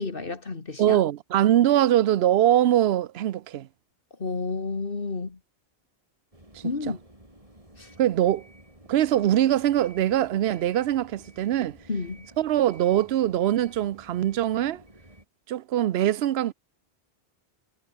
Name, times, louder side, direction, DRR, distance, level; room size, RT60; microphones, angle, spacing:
voice 1, 0.0-1.0 4.2-5.4 6.6-7.0 7.8-7.9 11.9-12.3, left 4 dB, 55° left, 2.0 m, -31 dB
voice 2, 0.8-3.7 6.5-6.6 8.0-8.4 8.9-11.8 12.4-14.8 15.5-16.5, right 12 dB, 70° right, 0.9 m, -22 dB
sound 1, 6.3-15.2, right 1 dB, 30° right, 5.8 m, -52 dB
omnidirectional pair, 1.1 m